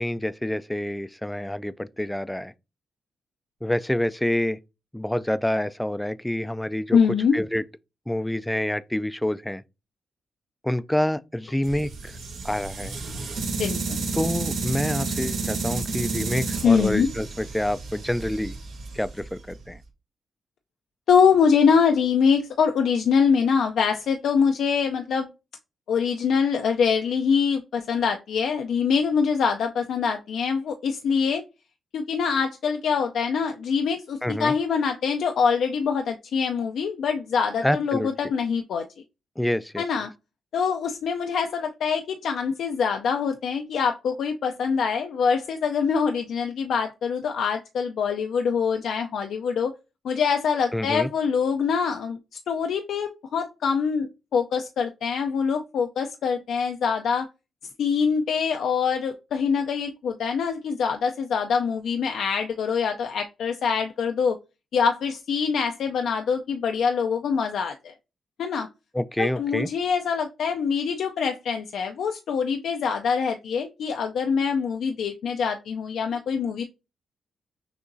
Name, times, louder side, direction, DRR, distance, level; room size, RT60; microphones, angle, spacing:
voice 1, 0.0-2.5 3.6-4.6 4.9-7.0 7.3-7.6 8.1-9.6 10.6-12.2 12.4-13.0 14.1-18.6 18.9-19.8 34.2-34.5 37.6-38.1 39.4-39.8 50.7-51.1 68.9-69.7, left 1 dB, 5° left, 0.3 m, -27 dB
voice 2, 6.9-7.3 13.6-14.0 16.6-17.1 21.1-25.3 25.9-31.4 31.9-38.9 39.8-40.1 40.5-49.7 50.0-52.2 52.5-57.3 57.8-64.4 64.7-67.9 68.4-68.7 69.2-76.6, left 6 dB, 80° left, 0.4 m, -24 dB
sound 1, 11.6-19.7, right 3 dB, 85° right, 1.2 m, -31 dB
6.1 x 2.9 x 2.6 m
cardioid pair, 75°, 0 cm